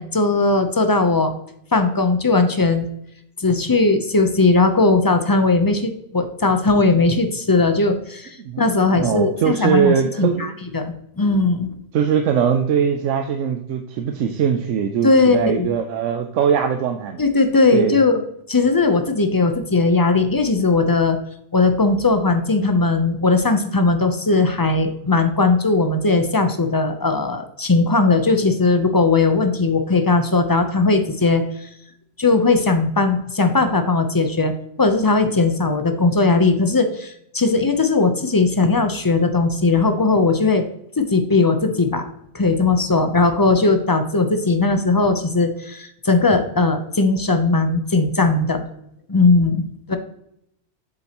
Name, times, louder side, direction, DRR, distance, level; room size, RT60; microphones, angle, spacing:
voice 1, 0.0-1.3 1.7-2.9 3.4-11.7 15.0-15.8 17.2-18.2 18.5-21.2 21.5-31.4 32.2-40.6 41.0-42.1 42.3-48.6 49.1-50.0, left 3 dB, 25° left, 7 dB, 0.5 m, -18 dB
voice 2, 8.4-10.6 11.9-17.2 17.7-18.0, right 7 dB, 90° right, 6 dB, 1.0 m, -21 dB
7.7 x 7.4 x 2.9 m, 0.75 s
omnidirectional pair, 1.2 m